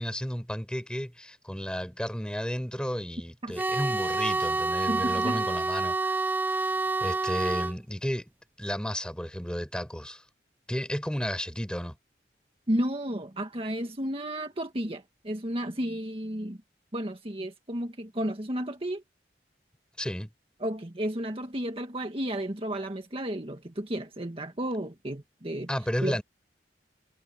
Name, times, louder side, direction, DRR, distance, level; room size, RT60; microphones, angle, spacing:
voice 1, 0.0-6.7 7.0-8.3 8.6-10.2 10.7-12.0 20.0-20.3 25.7-26.2, equal, 5° left, 4.8 m, -33 dB
sound 1, 3.6-7.8, right 3 dB, 10° right, 0.5 m, -28 dB
voice 2, 4.9-5.4 12.7-16.6 16.9-19.0 20.6-25.7 26.0-26.2, right 1 dB, 35° right, 1.7 m, -32 dB
head